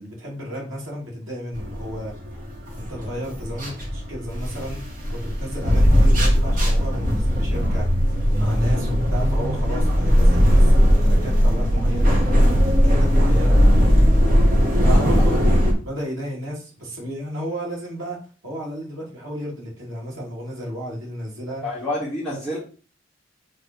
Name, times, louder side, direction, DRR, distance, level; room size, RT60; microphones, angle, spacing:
voice 1, 0.0-2.1 2.7-4.8 5.1-7.9 8.3-12.2 12.8-13.6 14.9-21.6, equal, 80° right, -3 dB, 3.4 m, -33 dB
sound 1, 1.5-15.7, equal, 45° right, 1.9 m, -18 dB
voice 2, 14.8-15.4 21.6-22.6, equal, 5° left, -9 dB, 2.2 m, -29 dB
6.4 x 3.9 x 4.7 m, 0.38 s
head